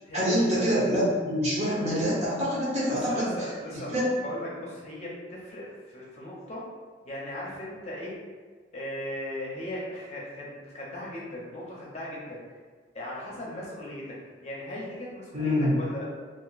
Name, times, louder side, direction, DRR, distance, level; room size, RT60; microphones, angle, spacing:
voice 1, 0.1-4.2 15.3-15.8, equal, 35° right, -6 dB, 0.8 m, -26 dB
voice 2, 2.8-3.9 4.2-6.6 7.0-8.1 8.7-12.4 12.9-14.1 14.4-16.0, left 1 dB, 35° left, -5 dB, 0.7 m, -38 dB
2.5 x 2.2 x 3.9 m, 1.5 s
head